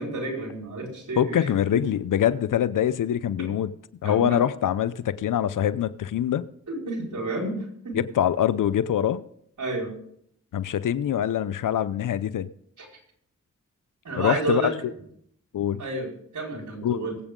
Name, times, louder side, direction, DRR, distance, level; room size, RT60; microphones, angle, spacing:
voice 1, 0.0-1.5 4.0-4.4 6.7-7.6 7.8-8.0 9.6-9.9 12.8-12.9 14.0-14.7 15.8-17.2, right 2 dB, 70° right, 5.0 m, -30 dB
voice 2, 1.2-3.7 4.0-6.4 7.9-9.2 10.5-12.5 14.2-14.7 15.5-15.8 16.8-17.0, left 10 dB, 85° left, 0.6 m, -24 dB
22.0 x 8.3 x 3.8 m
cardioid pair, 45°, 31 cm